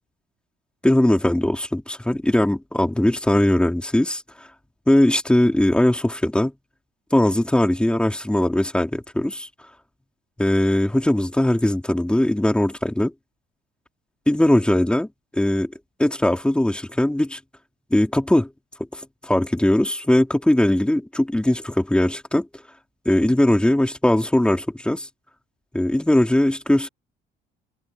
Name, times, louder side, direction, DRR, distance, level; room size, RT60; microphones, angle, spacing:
voice 1, 0.8-4.5 4.9-6.5 7.1-9.5 10.4-13.1 14.3-15.1 15.3-15.7 16.0-17.4 17.9-18.5 18.9-22.5 23.0-25.1 25.7-26.9, left 1 dB, 5° left, 3.2 m, -20 dB
cardioid pair, 110°, 17 cm